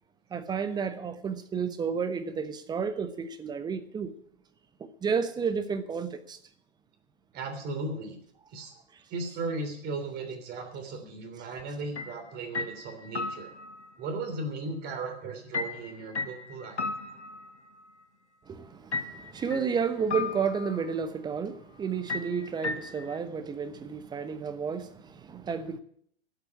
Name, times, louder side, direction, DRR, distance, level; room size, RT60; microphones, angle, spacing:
voice 1, 0.3-4.1 4.8-6.4 18.5-25.8, right 6 dB, 10° right, 0.9 m, -31 dB
voice 2, 7.3-8.2 8.5-8.7 9.1-13.5 14.0-16.8, right 3 dB, 30° right, 3.2 m, -36 dB
sound 1, 11.9-12.2 12.5-13.9 15.5-17.9 18.9-19.7 20.1-20.9 22.1-23.2, left 4 dB, 85° left, 1.2 m, -35 dB
11.5 x 8.0 x 9.5 m
figure-of-eight pair, 110°, 33 cm